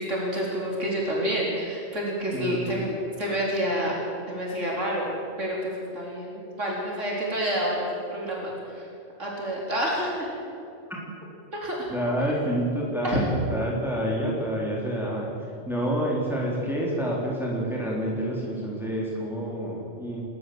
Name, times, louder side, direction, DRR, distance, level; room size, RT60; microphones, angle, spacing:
voice 1, 0.0-3.9 4.3-5.1 5.4-8.9 9.2-10.3 11.5-11.9 13.0-13.2, equal, 75° right, -3 dB, 4.5 m, -28 dB
voice 2, 2.3-2.8 10.9-11.0 11.9-13.2 13.5-20.2, equal, ahead, -4 dB, 3.8 m, -28 dB
29.5 x 14.0 x 7.9 m, 2.7 s
omnidirectional pair, 1.3 m